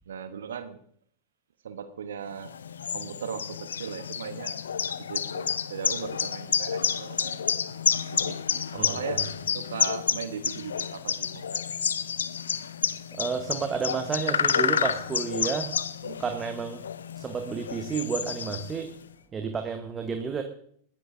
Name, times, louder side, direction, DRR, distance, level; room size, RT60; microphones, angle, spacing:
voice 1, 0.1-0.8 1.6-2.5 2.9-4.6 5.1-7.5 8.1-11.7 16.0-16.2, right 7 dB, 65° right, 11 dB, 0.9 m, -38 dB
sound 1, 2.4-19.0, left 7 dB, 70° left, 0.5 m, -30 dB
voice 2, 8.7-9.2 13.1-15.7 16.2-16.8 17.2-18.9 19.3-20.4, right 6 dB, 20° right, 6 dB, 1.2 m, -31 dB
20.5 x 15.0 x 2.6 m, 0.62 s
figure-of-eight pair, 90°, 0 cm